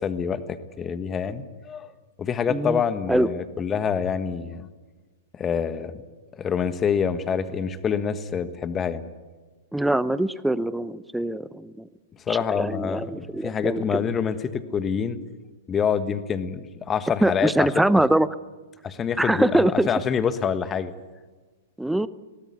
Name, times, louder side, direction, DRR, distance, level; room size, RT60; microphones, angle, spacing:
voice 1, 0.0-1.9 2.2-4.7 5.3-6.0 6.3-9.1 12.3-15.2 15.7-17.7 18.8-20.9, left 7 dB, 20° left, 12 dB, 1.5 m, -26 dB
voice 2, 2.5-2.8 3.1-3.3 9.7-11.9 12.3-14.0 17.2-18.3 19.2-19.9 21.8-22.1, right 1 dB, 5° right, 17 dB, 0.8 m, -23 dB
23.0 x 18.5 x 9.6 m, 1.3 s
figure-of-eight pair, 110°, 0 cm